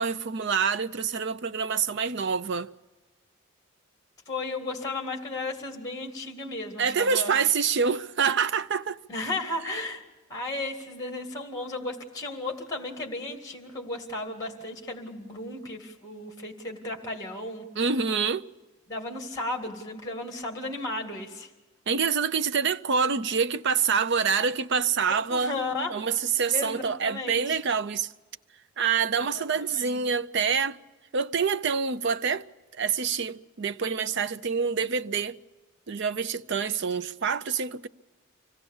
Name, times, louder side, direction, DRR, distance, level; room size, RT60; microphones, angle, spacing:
voice 1, 0.0-2.7 6.8-9.0 17.8-18.5 21.9-25.6 25.9-28.1 28.8-30.8 31.1-32.4 32.7-35.4 35.9-37.9, right 6 dB, 55° right, 0.6 m, -26 dB
voice 2, 4.3-7.3 9.1-10.0 10.3-17.7 18.9-21.5 25.3-25.9 26.5-27.6 29.3-29.4 29.7-30.0, left 2 dB, 15° left, 2.1 m, -34 dB
25.0 x 17.0 x 7.2 m
head